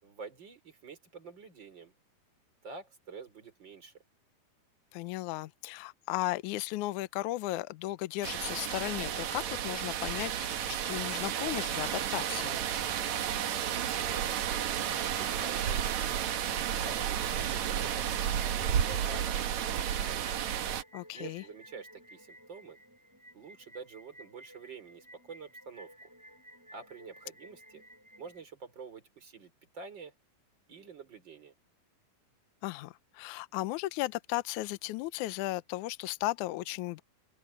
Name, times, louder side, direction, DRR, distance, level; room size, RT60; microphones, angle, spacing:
voice 1, 0.0-1.9 2.6-3.9 14.0-16.1 16.8-18.1 18.5-20.4 21.1-22.8 23.3-26.1 26.7-27.8 28.2-30.1 30.7-31.5, right 5 dB, 30° right, 4.8 m, -48 dB
voice 2, 4.9-12.6 20.9-21.4 32.6-37.0, left 18 dB, 80° left, 1.8 m, -35 dB
sound 1, 8.2-20.8, right 9 dB, 60° right, 2.2 m, -32 dB
sound 2, 14.1-28.4, equal, 5° right, 7.8 m, -55 dB
omnidirectional pair, 4.3 m